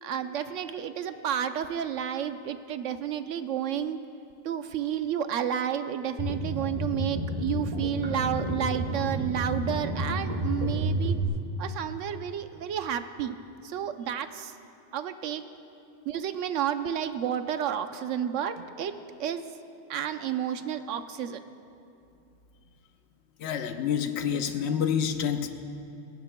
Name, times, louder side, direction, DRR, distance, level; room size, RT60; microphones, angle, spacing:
voice 1, 0.0-4.0 4.4-11.2 11.6-13.4 13.6-14.5 14.9-15.4 16.0-19.4 19.9-21.4, right 9 dB, 85° right, 9 dB, 1.0 m, -31 dB
sound 1, 6.2-11.2, right 1 dB, 35° right, 1.5 m, -30 dB
voice 2, 23.4-25.5, left 8 dB, 65° left, 7 dB, 1.0 m, -28 dB
29.5 x 16.5 x 2.2 m, 2.6 s
omnidirectional pair, 1.2 m